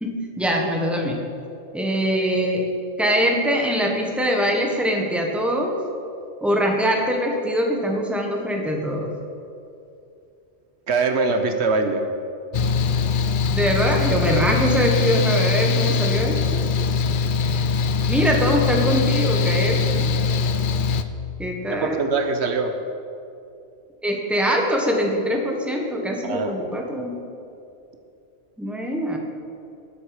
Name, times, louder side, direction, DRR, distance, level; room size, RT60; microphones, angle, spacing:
voice 1, 0.0-1.2 1.7-2.7 3.0-5.8 6.4-9.1 13.5-16.6 18.1-20.1 21.4-22.1 24.0-27.2 28.6-29.2, equal, ahead, 0 dB, 1.4 m, -23 dB
voice 2, 10.9-12.0 21.7-22.8 26.2-26.5, right 4 dB, 75° right, 6 dB, 1.2 m, -22 dB
Mechanical fan, 12.5-21.0, left 4 dB, 55° left, 0.7 m, -22 dB
19.5 x 7.8 x 5.0 m, 2.6 s
omnidirectional pair, 1.1 m